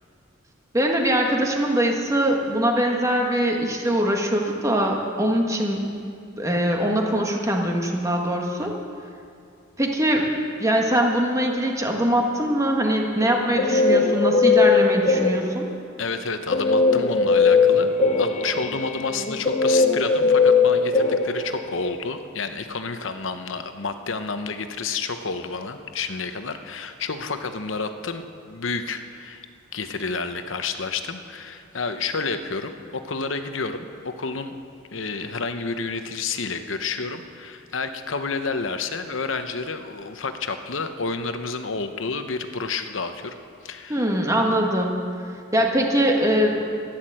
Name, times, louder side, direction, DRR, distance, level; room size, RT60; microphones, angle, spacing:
voice 1, 0.7-5.8 6.4-8.7 9.8-10.3 10.6-15.7 43.9-45.0 45.5-46.7, equal, 15° right, 1 dB, 1.5 m, -22 dB
Guitar, 13.2-15.7 16.5-21.9, left 4 dB, 35° left, 0.9 m, -19 dB
voice 2, 16.0-29.4 29.7-34.6 34.9-43.3 43.6-44.1, left 4 dB, 70° left, 8 dB, 0.9 m, -30 dB
14.5 x 10.5 x 7.7 m, 2.4 s
head